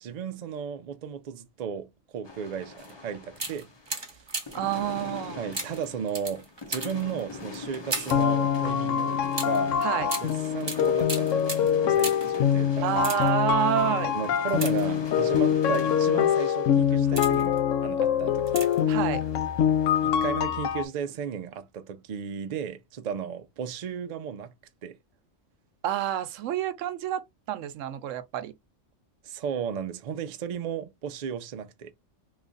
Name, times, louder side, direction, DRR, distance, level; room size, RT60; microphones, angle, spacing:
voice 1, 0.0-4.2 5.4-9.1 9.4-11.4 11.8-12.9 14.1-19.0 20.0-24.5 24.8-25.0 29.2-31.9, right 7 dB, 60° right, 0.4 m, -35 dB
sound 1, 2.2-4.1 4.5-17.9 18.3-20.3, left 3 dB, 30° left, 0.5 m, -41 dB
sound 2, 2.8-2.9 3.3-4.7 5.5-8.3 9.3-12.4 12.9-13.5 14.5-15.3 16.0-16.2 16.8-17.6 18.5-18.9 19.2-19.3, right 3 dB, 25° right, 0.8 m, -36 dB
voice 2, 4.5-5.4 9.8-10.1 12.8-14.1 18.9-19.3 25.8-28.5, right 11 dB, 85° right, 0.9 m, -28 dB
sound 3, 8.1-20.8, left 8 dB, 85° left, 0.9 m, -24 dB
3.1 x 2.4 x 3.8 m
omnidirectional pair, 1.3 m